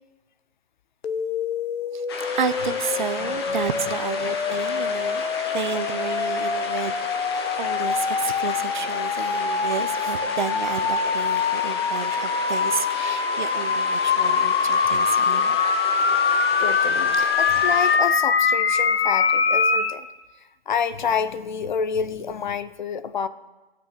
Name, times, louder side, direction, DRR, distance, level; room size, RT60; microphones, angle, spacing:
sound 1, 1.0-19.9, left 5 dB, 85° left, 1.2 m, -24 dB
sound 2, 2.1-18.0, left 4 dB, 25° left, 1.1 m, -33 dB
voice 1, 2.3-5.2 5.5-7.3 7.6-15.6 17.1-17.4, right 7 dB, 50° right, 13 dB, 0.7 m, -31 dB
voice 2, 3.2-3.6 16.6-20.1 20.7-23.3, left 6 dB, 50° left, 13 dB, 0.7 m, -28 dB
13.5 x 6.2 x 8.3 m, 1.1 s
hypercardioid pair, 170°, 30 cm